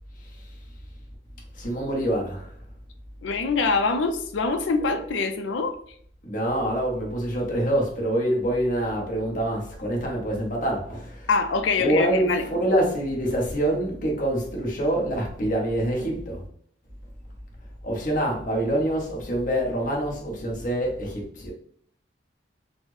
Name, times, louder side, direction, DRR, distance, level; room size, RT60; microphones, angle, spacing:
voice 1, 1.6-2.5 6.2-11.3 11.7-16.4 17.8-21.5, right 1 dB, 45° left, 0.8 m, -26 dB
voice 2, 3.2-5.8 11.3-12.5, left 4 dB, 90° left, 0.4 m, -24 dB
4.0 x 2.0 x 3.1 m
head